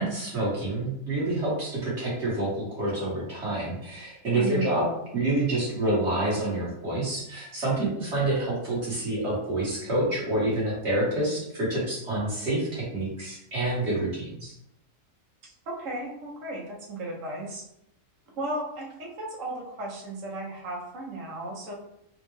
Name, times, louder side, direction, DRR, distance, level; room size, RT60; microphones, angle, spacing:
voice 1, 0.0-4.8 5.1-14.5, right 2 dB, 55° right, -6 dB, 1.7 m, -28 dB
voice 2, 4.3-4.7 15.4-17.6 18.4-21.7, right 1 dB, 75° right, -2 dB, 1.3 m, -35 dB
4.0 x 2.2 x 3.1 m, 0.78 s
omnidirectional pair, 1.4 m